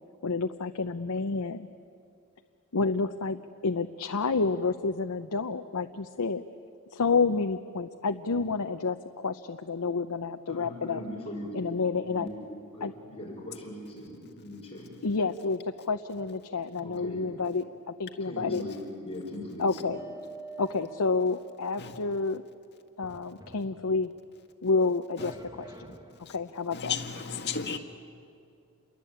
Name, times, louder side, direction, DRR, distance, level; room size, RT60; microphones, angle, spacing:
voice 1, 0.2-1.7 2.7-6.4 6.9-11.0 11.5-12.3 12.8-12.9 15.0-18.6 19.6-20.0 20.6-22.4 23.0-24.1 24.6-25.7 26.3-26.9, left 4 dB, 85° left, 0.8 m, -29 dB
voice 2, 10.5-11.6 12.0-12.4 12.7-14.9 16.8-17.4 18.2-19.9, left 1 dB, 25° left, 5.9 m, -40 dB
sound 1, 19.9-21.9 23.0-24.3 25.2-26.6, right 3 dB, 20° right, 1.6 m, -46 dB
voice 3, 26.7-27.8, left 6 dB, 50° left, 1.9 m, -34 dB
29.0 x 22.5 x 8.8 m
head